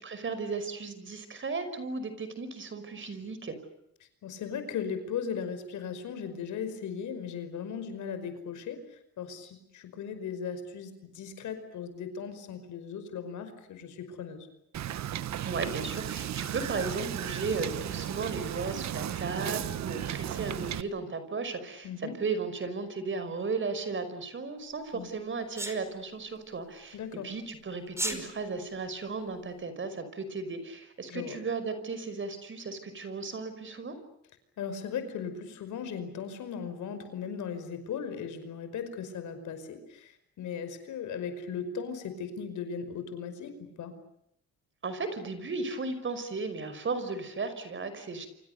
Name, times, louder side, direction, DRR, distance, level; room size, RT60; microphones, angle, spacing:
voice 1, 0.0-3.6 15.4-27.0 27.2-34.0 44.8-48.3, right 4 dB, 40° right, 11 dB, 5.5 m, -35 dB
voice 2, 4.2-14.5 21.8-22.2 24.9-25.1 26.9-27.3 31.1-31.4 34.6-43.9, left 6 dB, 75° left, 9 dB, 5.3 m, -37 dB
Wind / Boat Water vehicle, 14.7-20.8, right 11 dB, 65° right, 1.3 m, -35 dB
Sneeze, 25.6-25.8 27.9-28.2, right 1 dB, 10° right, 5.2 m, -31 dB
29.0 x 25.5 x 6.8 m, 0.75 s
cardioid pair, 90°, 30 cm